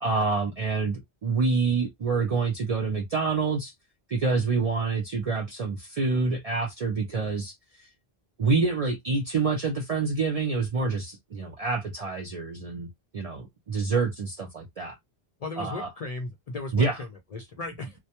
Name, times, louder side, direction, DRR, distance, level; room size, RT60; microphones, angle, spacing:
voice 1, 0.0-3.7 4.1-7.5 8.4-12.9 13.1-14.9 15.6-15.9 16.7-17.0, right 4 dB, 55° right, 0.4 m, -27 dB
voice 2, 15.4-18.0, left 3 dB, 55° left, 0.4 m, -36 dB
2.2 x 2.0 x 2.8 m
omnidirectional pair, 1.1 m